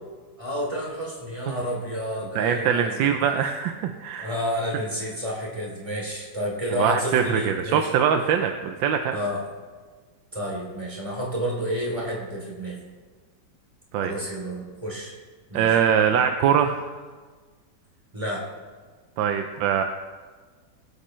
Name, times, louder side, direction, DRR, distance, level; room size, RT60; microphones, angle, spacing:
voice 1, 0.4-3.0 4.2-7.9 9.1-9.4 10.3-12.8 14.0-15.1 15.5-15.8 18.1-18.5, equal, 15° right, -3 dB, 3.0 m, -30 dB
voice 2, 2.3-4.3 6.8-9.2 13.9-14.1 15.5-16.9 19.2-19.8, right 8 dB, 85° right, 6 dB, 1.4 m, -22 dB
21.0 x 8.3 x 3.1 m, 1.4 s
omnidirectional pair, 2.0 m